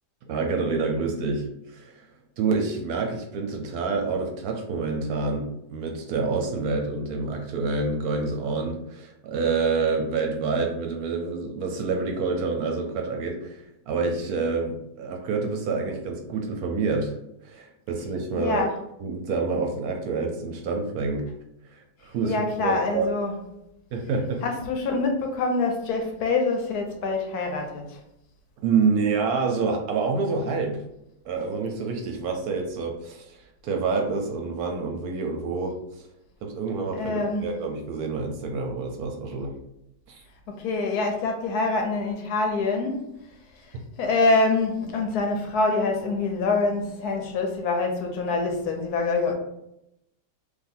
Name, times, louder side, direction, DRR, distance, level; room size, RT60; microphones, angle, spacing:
voice 1, 0.3-2.1 2.4-17.1 17.4-18.7 19.0-21.3 21.7-23.1 23.9-24.4 28.6-30.8 31.3-35.8 36.4-39.5 40.1-40.2, right 4 dB, 70° right, 1.0 m, -27 dB
voice 2, 18.4-18.7 22.2-23.4 24.4-28.0 36.9-37.5 40.5-43.1 43.7-49.3, left 3 dB, 70° left, 1.0 m, -25 dB
2.7 x 2.5 x 4.1 m
omnidirectional pair, 1.8 m